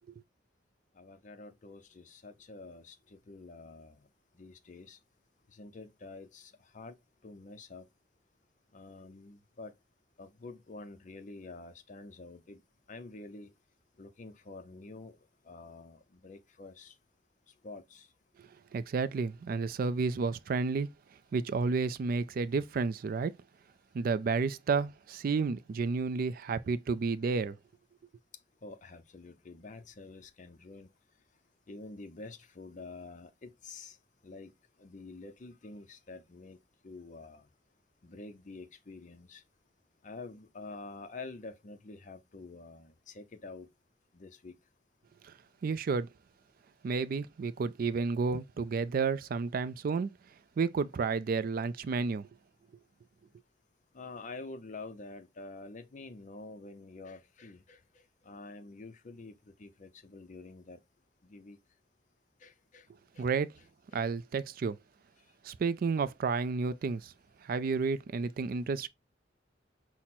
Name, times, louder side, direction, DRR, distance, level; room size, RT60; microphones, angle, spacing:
voice 1, 1.0-4.0 4.4-5.0 5.5-6.9 7.2-7.9 8.7-9.7 10.2-12.6 12.9-13.5 14.0-15.1 15.5-16.9 17.6-18.1 28.6-30.9 31.7-34.0 34.2-34.5 34.8-36.6 36.8-37.4 38.0-39.4 40.0-43.7 44.1-44.5 53.9-57.8 58.3-59.3 59.6-60.8 61.2-61.6 62.4-62.8 63.2-63.3, left 3 dB, 45° left, 0.6 m, -47 dB
voice 2, 18.4-20.9 21.3-23.3 23.9-27.6 45.2-45.3 45.6-46.1 46.8-50.1 50.6-52.3 63.2-63.5 63.9-64.8 65.4-67.1 67.4-68.9, right 4 dB, 50° right, 0.3 m, -31 dB
5.8 x 2.1 x 4.1 m
head